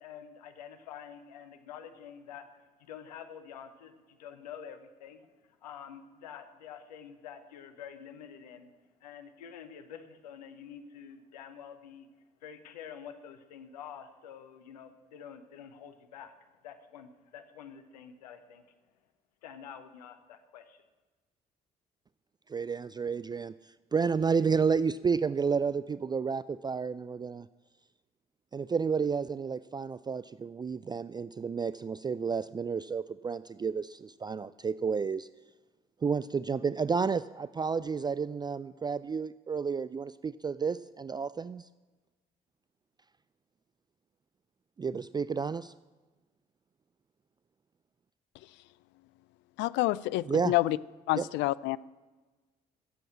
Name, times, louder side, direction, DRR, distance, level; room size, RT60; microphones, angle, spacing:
voice 1, 0.0-8.7 9.0-12.1 12.4-16.3 16.6-18.7 19.4-20.8, left 8 dB, 85° left, 9 dB, 1.0 m, -48 dB
voice 2, 22.5-27.5 28.5-35.3 36.0-41.7 44.8-45.7 50.3-50.5 51.1-51.3, right 5 dB, 20° right, 17 dB, 0.3 m, -31 dB
voice 3, 49.6-50.8 51.1-51.8, left 18 dB, 65° left, 20 dB, 0.4 m, -28 dB
15.0 x 7.8 x 7.4 m, 1.2 s
hypercardioid pair, 50°, 20 cm